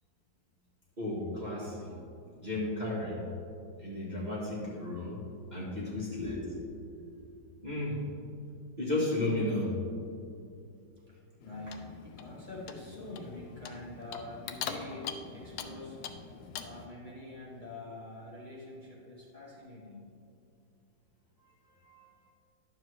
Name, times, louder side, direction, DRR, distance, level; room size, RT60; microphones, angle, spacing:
voice 1, 1.0-2.0 2.4-3.2 3.8-5.2 5.5-6.3 7.6-8.0 8.8-9.7 21.8-22.1, left 1 dB, 25° right, -7 dB, 1.2 m, -33 dB
voice 2, 6.1-6.5 7.0-7.8 11.4-16.0 16.6-20.1, left 2 dB, 30° left, -6 dB, 1.1 m, -45 dB
Clock, 11.4-16.9, left 7 dB, 80° left, 1.3 m, -43 dB
10.5 x 7.2 x 3.2 m, 2.6 s
omnidirectional pair, 2.1 m